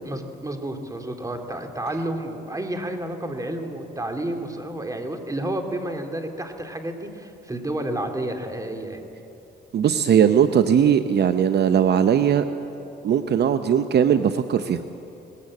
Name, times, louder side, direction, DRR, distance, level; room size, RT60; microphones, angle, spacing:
voice 1, 0.0-9.0, right 1 dB, 15° right, 5 dB, 2.5 m, -30 dB
voice 2, 9.7-12.4 13.0-14.8, right 8 dB, 55° right, 10 dB, 0.8 m, -19 dB
20.0 x 17.0 x 8.5 m, 2.8 s
cardioid pair, 90°, 20 cm